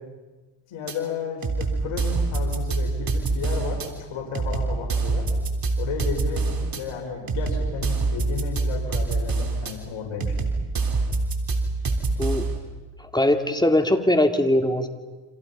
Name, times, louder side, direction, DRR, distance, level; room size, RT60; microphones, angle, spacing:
voice 1, 0.7-5.2 5.8-10.3, left 5 dB, 80° left, 0 dB, 5.2 m, -33 dB
sound 1, 0.9-1.0 1.4-3.9 4.3-6.8 7.3-9.7 10.2-12.6, right 3 dB, 45° right, 3.6 m, -25 dB
voice 2, 13.1-14.9, left 1 dB, 10° left, 6 dB, 2.7 m, -20 dB
30.0 x 26.0 x 5.6 m, 1.2 s
cardioid pair, 75°, 49 cm